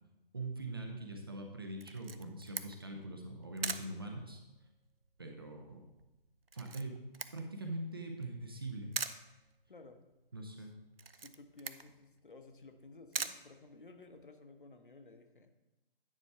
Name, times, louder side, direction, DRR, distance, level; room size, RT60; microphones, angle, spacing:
voice 1, 0.3-4.4 5.2-5.9 6.5-7.0 7.3-9.0 10.3-10.7, right 2 dB, 25° right, 3 dB, 0.6 m, -42 dB
Camera, 1.8-14.3, right 5 dB, 80° right, 0.6 m, -45 dB
voice 2, 9.7-10.0 10.5-10.7 11.1-15.5, left 3 dB, 60° left, 6 dB, 1.0 m, -55 dB
9.8 x 5.1 x 4.7 m, 1.0 s
figure-of-eight pair, 145°, 29 cm